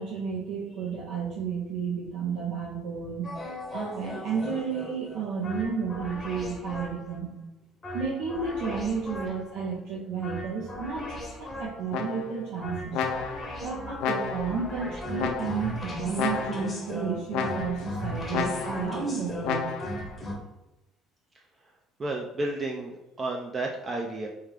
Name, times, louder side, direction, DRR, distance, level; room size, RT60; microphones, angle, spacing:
voice 1, 0.0-3.3 3.7-7.3 7.9-13.0 13.6-19.7, right 5 dB, 85° right, -5 dB, 0.7 m, -32 dB
sound 1, 3.2-7.2 7.8-9.6 10.2-12.0 12.6-20.3, left 1 dB, 15° left, 0.8 m, -37 dB
sound 2, 11.9-12.5 12.9-13.6 14.0-14.6 15.2-15.8 16.2-16.8 17.3-17.9 18.3-18.9 19.4-20.0, left 6 dB, 80° left, 0.5 m, -31 dB
voice 2, 22.0-24.3, right 2 dB, 20° right, 1 dB, 0.3 m, -32 dB
4.6 x 2.4 x 3.2 m, 0.96 s
cardioid pair, 170°, 0 cm